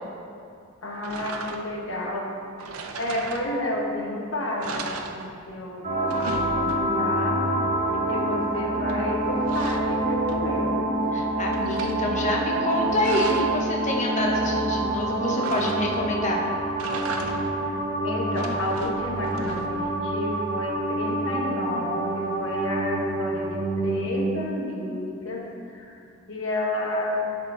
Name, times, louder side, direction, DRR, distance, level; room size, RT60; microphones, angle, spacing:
voice 1, 0.8-2.3 2.9-7.4 7.9-10.9 17.6-17.8 18.0-25.9 26.3-27.2, left 1 dB, 65° left, -1 dB, 1.3 m, -31 dB
sound 1, 1.0-1.9 2.6-3.9 4.2-4.3 4.6-5.7 5.9-7.2 8.9-10.7 11.1-12.0 12.7-13.6 15.4-16.2 16.7-17.7 18.2-20.0, right 3 dB, 85° right, 0.6 m, -37 dB
sound 2, 5.8-24.3, right 1 dB, 35° right, 1.0 m, -27 dB
voice 2, 11.1-16.4, left 1 dB, 35° left, -2 dB, 1.0 m, -27 dB
12.5 x 4.3 x 3.9 m, 2.4 s
head